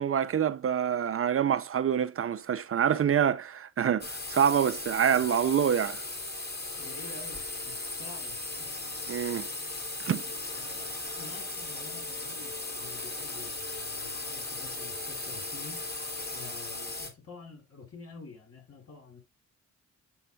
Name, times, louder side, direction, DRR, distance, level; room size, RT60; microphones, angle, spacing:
voice 1, 0.0-6.0 9.1-9.5 10.0-10.2, right 8 dB, 45° right, 0.6 m, -26 dB
sound 1, 4.0-17.1, left 2 dB, 30° left, 3.2 m, -37 dB
voice 2, 6.8-8.7 10.5-15.9 16.3-19.2, left 4 dB, 50° left, 5.0 m, -49 dB
7.8 x 5.9 x 2.3 m
cardioid pair, 70°, 30 cm